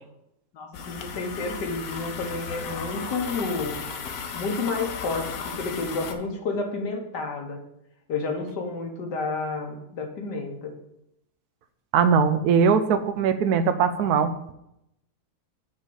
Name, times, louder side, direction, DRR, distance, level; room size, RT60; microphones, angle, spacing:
voice 1, 0.5-3.8 4.3-7.6 8.1-10.7, left 3 dB, 85° left, 3 dB, 1.8 m, -30 dB
sound 1, 0.7-6.1, left 6 dB, 65° left, 1.1 m, -35 dB
voice 2, 11.9-14.3, right 6 dB, 75° right, 11 dB, 1.1 m, -20 dB
8.1 x 3.7 x 6.7 m, 0.82 s
omnidirectional pair, 1.8 m